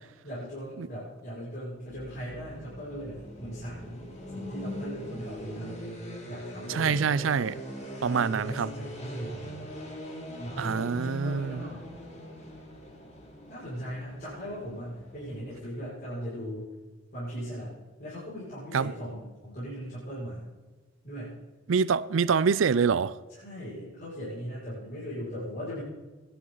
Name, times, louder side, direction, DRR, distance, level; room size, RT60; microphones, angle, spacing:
voice 1, 0.2-4.1 4.3-5.8 6.3-7.0 8.0-9.8 10.4-11.9 13.5-16.6 17.1-17.7 18.0-20.5 21.0-21.3 23.3-25.8, equal, 50° left, 5.9 m, -39 dB
sound 1, 1.8-15.7, equal, 35° left, 2.8 m, -41 dB
voice 2, 6.7-7.6 8.0-8.7 10.6-11.6 18.7-18.9 21.7-23.1, right 6 dB, 75° right, 0.4 m, -25 dB
22.0 x 11.0 x 4.0 m
head